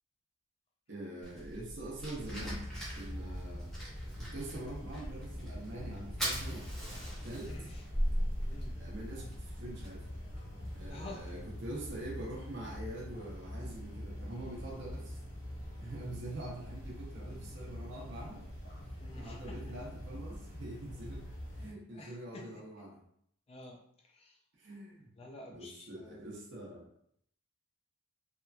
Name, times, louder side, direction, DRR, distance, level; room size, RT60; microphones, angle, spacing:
voice 1, 0.9-2.6 2.9-3.7 4.2-6.7 7.2-7.5 8.8-10.0 10.7-15.2 15.8-18.4 19.1-21.3 21.5-23.0 24.6-25.1 25.5-26.9, right 1 dB, 55° right, -3 dB, 0.7 m, -44 dB
Fire, 1.2-10.9, equal, ahead, 0.6 m, -40 dB
sound 1, 2.2-21.7, left 1 dB, 60° left, 0.7 m, -44 dB
voice 2, 7.4-7.8 8.5-8.8 10.9-11.3 19.0-19.6 21.9-22.4 23.5-24.4 25.2-26.2, left 2 dB, 25° left, 1 dB, 0.3 m, -50 dB
3.0 x 2.4 x 2.2 m, 0.69 s
head